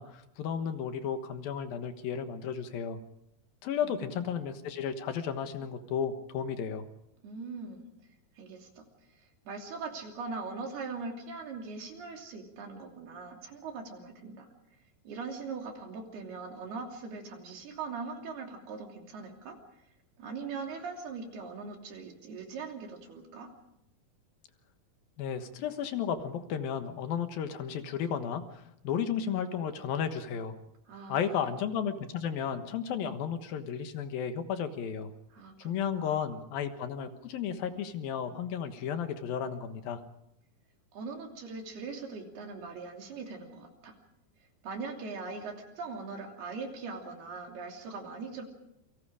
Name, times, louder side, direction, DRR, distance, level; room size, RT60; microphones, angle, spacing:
voice 1, 0.0-3.0 3.6-6.9 25.2-30.6 31.1-35.1 35.6-40.0, left 7 dB, 70° left, 8 dB, 3.1 m, -33 dB
voice 2, 3.8-4.3 7.2-7.8 8.4-8.8 9.5-14.5 15.0-19.6 20.2-23.5 30.9-31.5 35.3-36.2 40.9-44.0 44.6-48.4, right 4 dB, 90° right, 3 dB, 4.9 m, -41 dB
28.5 x 24.0 x 5.0 m, 0.80 s
omnidirectional pair, 4.4 m